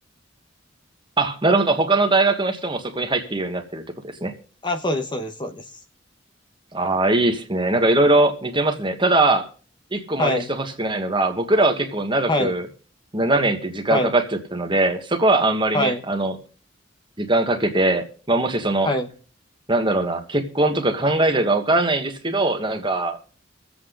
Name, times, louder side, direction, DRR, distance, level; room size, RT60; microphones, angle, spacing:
voice 1, 1.2-4.3 6.7-9.5 9.9-12.7 13.1-14.2 14.5-16.3 17.2-18.9 19.7-23.2, right 2 dB, 25° right, 1.5 m, -21 dB
voice 2, 4.6-5.6 10.2-10.5 12.3-12.5 13.9-14.1 15.7-16.0 18.8-19.1, left 1 dB, 25° left, 1.0 m, -23 dB
24.5 x 8.2 x 3.9 m
head